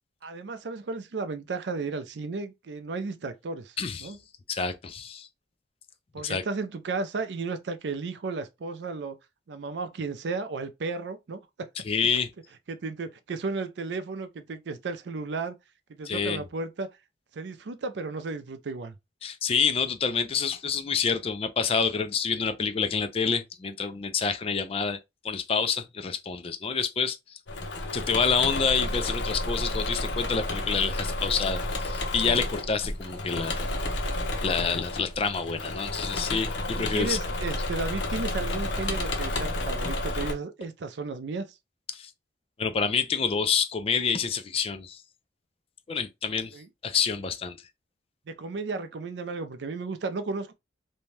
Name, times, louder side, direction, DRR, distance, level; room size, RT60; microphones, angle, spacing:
voice 1, 0.2-3.8 4.0-4.2 6.1-9.2 9.5-11.7 12.7-15.5 15.9-16.9 17.3-19.0 36.6-41.5 46.5-46.7 48.3-50.5, right 4 dB, 75° right, 0.4 m, -34 dB
voice 2, 3.8-4.2 4.5-5.3 6.2-6.4 11.9-12.3 16.0-16.4 19.2-25.0 25.2-27.4 27.9-33.6 34.4-37.2 41.9-42.1 42.6-45.0 45.9-46.6 46.8-47.6, left 6 dB, 35° left, 0.3 m, -28 dB
Engine / Mechanisms, 27.5-40.3, left 2 dB, 85° left, 0.7 m, -31 dB
2.6 x 2.2 x 3.1 m
head